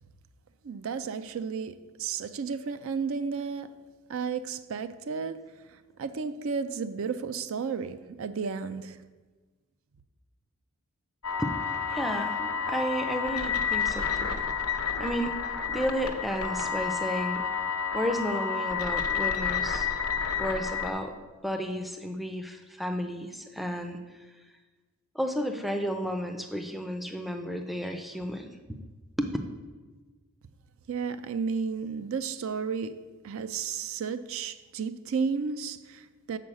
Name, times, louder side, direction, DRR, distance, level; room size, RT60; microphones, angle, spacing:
voice 1, 0.6-3.7 4.1-5.4 5.7-9.0 30.9-33.0 33.2-36.4, right 5 dB, 60° right, 0.4 m, -33 dB
sound 1, 11.2-20.9, left 6 dB, 80° left, 0.8 m, -30 dB
voice 2, 11.9-14.4 14.7-15.4 15.7-17.4 17.9-19.9 20.4-21.1 21.4-24.0 25.1-28.8 29.2-29.3, equal, ahead, 0.4 m, -32 dB
7.5 x 4.6 x 6.3 m
head